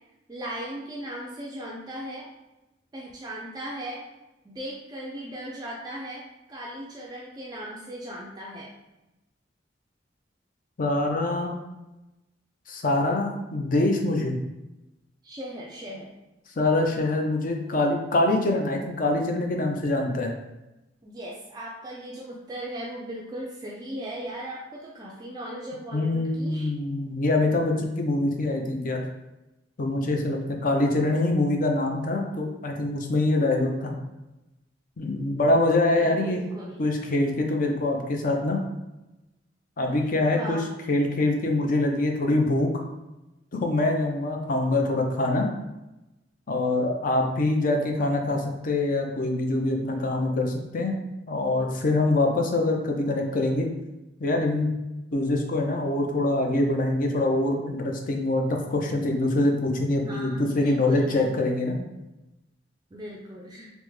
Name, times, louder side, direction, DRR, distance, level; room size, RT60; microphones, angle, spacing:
voice 1, 0.3-2.3 2.9-4.0 4.4-8.7 15.2-16.1 21.0-26.7 36.0-36.9 40.3-40.7 60.0-61.2 62.9-63.7, right 1 dB, 20° right, -3 dB, 0.3 m, -38 dB
voice 2, 10.8-11.5 12.7-14.4 16.6-20.3 25.9-29.0 29.8-33.9 35.0-36.4 36.8-38.6 39.8-40.6 40.9-42.7 43.5-45.5 46.5-51.0 51.3-53.7 54.2-54.7 55.1-61.8, left 2 dB, 45° left, 2 dB, 0.5 m, -24 dB
3.4 x 2.1 x 3.1 m, 0.99 s
head